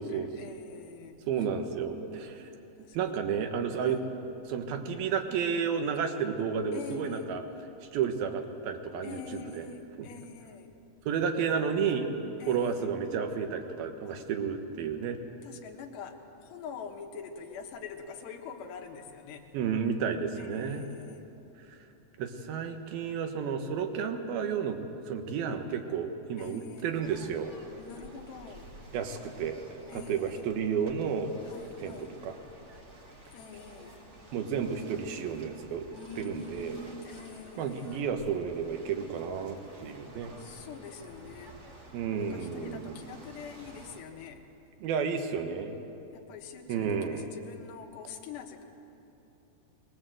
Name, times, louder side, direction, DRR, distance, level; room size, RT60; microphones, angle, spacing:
voice 1, 0.0-1.5 2.9-3.1 3.8-4.0 6.7-7.3 9.0-10.8 12.4-12.9 14.1-14.2 15.4-19.5 20.4-21.3 26.4-27.0 27.8-28.7 29.9-30.5 31.4-32.2 33.3-34.0 35.9-38.1 40.4-41.6 42.2-44.4 46.1-48.6, left 6 dB, 85° left, 2 dB, 3.6 m, -45 dB
voice 2, 1.3-2.5 2.9-4.0 4.5-7.4 7.9-9.7 10.0-10.1 11.1-12.1 12.5-15.2 19.5-20.8 22.2-24.8 25.1-27.5 28.9-29.6 29.9-31.4 31.8-32.3 34.3-35.9 36.2-36.8 37.6-40.3 41.9-43.0 44.8-45.8 46.7-47.3, right 6 dB, 70° right, 6 dB, 3.0 m, -32 dB
sound 1, 27.0-44.0, right 1 dB, 40° right, 1.0 m, -52 dB
23.0 x 20.5 x 7.8 m, 3.0 s
omnidirectional pair, 4.7 m